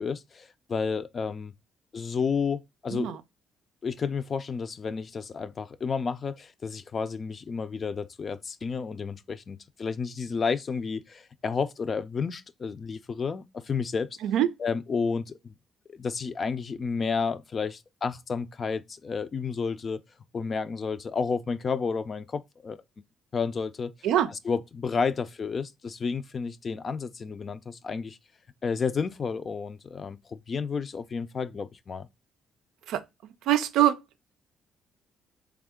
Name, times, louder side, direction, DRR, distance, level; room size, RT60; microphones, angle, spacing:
voice 1, 0.0-1.5 1.9-3.1 3.8-14.2 14.6-15.5 15.9-20.0 20.3-22.8 23.3-23.9 24.3-28.2 28.6-32.1, left 5 dB, 40° left, 0.4 m, -31 dB
voice 2, 33.5-34.0, right 12 dB, 85° right, 0.4 m, -23 dB
3.6 x 3.4 x 3.5 m
cardioid pair, 90°, 0 cm